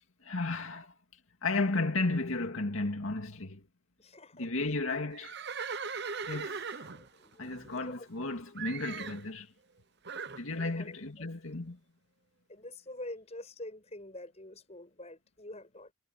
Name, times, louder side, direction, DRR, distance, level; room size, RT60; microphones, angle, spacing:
voice 1, 0.2-0.9 1.4-3.6 4.4-5.4 6.3-6.9 7.4-9.5 10.4-11.8, left 2 dB, 75° left, 2.2 m, -33 dB
voice 2, 4.0-4.5 6.8-8.1 10.6-10.9 12.5-15.9, left 1 dB, 30° left, 6.4 m, -46 dB
Livestock farm animals working animals, 5.1-8.2 8.6-9.3 10.0-10.4, right 5 dB, 50° right, 1.0 m, -39 dB
head